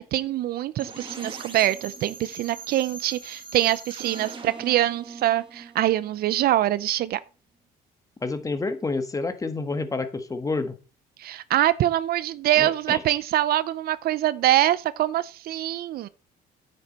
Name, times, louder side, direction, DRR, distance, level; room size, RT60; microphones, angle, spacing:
voice 1, 0.0-7.2 11.2-16.1, right 13 dB, 65° right, 0.6 m, -24 dB
sound 1, 0.8-6.6, right 4 dB, 30° right, 2.2 m, -41 dB
voice 2, 8.2-10.7 12.6-13.0, left 3 dB, 20° left, 1.5 m, -29 dB
9.6 x 7.9 x 4.2 m
cardioid pair, 110°, 17 cm